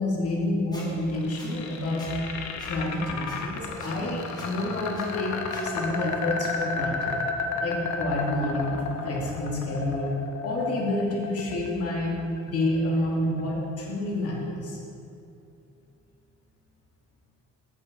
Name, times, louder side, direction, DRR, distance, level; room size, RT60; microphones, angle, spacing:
voice 1, 0.0-2.1 2.6-5.4 5.6-7.2 7.6-10.1 10.4-12.1 12.4-14.8, left 1 dB, 55° left, -3 dB, 2.0 m, -28 dB
Squeak, 0.7-0.9 1.4-1.5 2.0-2.1 2.6-2.7 3.3-3.4 3.8-3.9 4.4-4.5 4.9-5.1 5.5-5.6, left 1 dB, 15° left, 2.1 m, -45 dB
sound 1, 0.9-12.9, left 4 dB, 70° left, 1.0 m, -33 dB
8.7 x 7.4 x 4.1 m, 2.5 s
cardioid pair, 90°, 30 cm